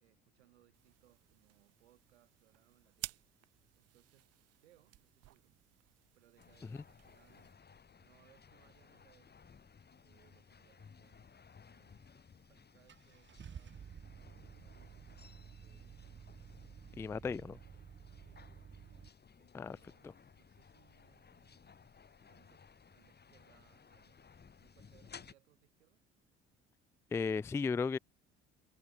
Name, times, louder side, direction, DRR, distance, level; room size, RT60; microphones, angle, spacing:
voice 1, 0.0-4.3 4.6-5.5 6.1-7.5 8.0-9.5 9.9-13.9 14.6-21.9 22.3-22.7 22.9-24.3 24.6-26.0, right 15 dB, 80° right, 5.0 m, -71 dB
sound 1, 0.7-7.5, right 17 dB, 50° right, 0.7 m, -53 dB
sound 2, 6.4-25.3, left 6 dB, 30° left, 2.5 m, -60 dB
Car / Engine starting, 12.2-12.3 12.9-19.1, right 7 dB, 35° right, 1.9 m, -53 dB
voice 2, 17.0-17.5 19.5-19.8 27.1-28.0, left 5 dB, 10° left, 0.3 m, -34 dB
figure-of-eight pair, 55°, 32 cm